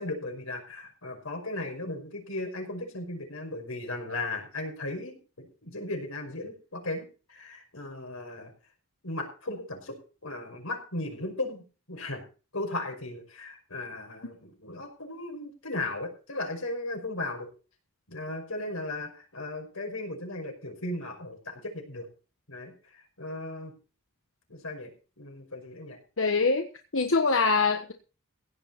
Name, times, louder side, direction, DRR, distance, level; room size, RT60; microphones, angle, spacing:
voice 1, 0.0-8.5 9.0-10.0 10.2-11.6 11.9-12.2 12.5-17.5 18.1-22.1 22.5-23.7 24.5-24.9 25.2-26.0, left 2 dB, 90° left, 4 dB, 5.5 m, -36 dB
voice 2, 26.2-26.7 26.9-27.9, left 4 dB, 65° left, 5 dB, 1.2 m, -24 dB
16.5 x 9.8 x 4.4 m, 0.35 s
head